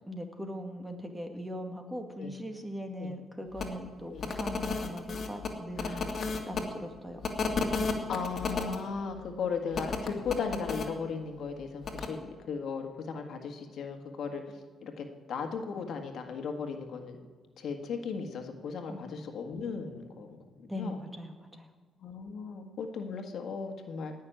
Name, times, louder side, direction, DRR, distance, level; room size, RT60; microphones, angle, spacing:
voice 1, 0.1-6.1 6.4-7.3 18.9-19.0 20.7-21.7, equal, 10° right, 4 dB, 2.1 m, -40 dB
sound 1, 3.6-3.7 4.2-6.6 7.2-8.8 9.7-10.9 11.8-12.1, left 4 dB, 50° left, 2.2 m, -32 dB
voice 2, 5.8-6.1 8.1-12.2 12.5-14.4 14.8-17.2 17.6-21.0 22.0-24.1, left 5 dB, 65° left, 4 dB, 1.8 m, -36 dB
18.5 x 6.5 x 9.1 m, 1.4 s
cardioid pair, 90°, 0 cm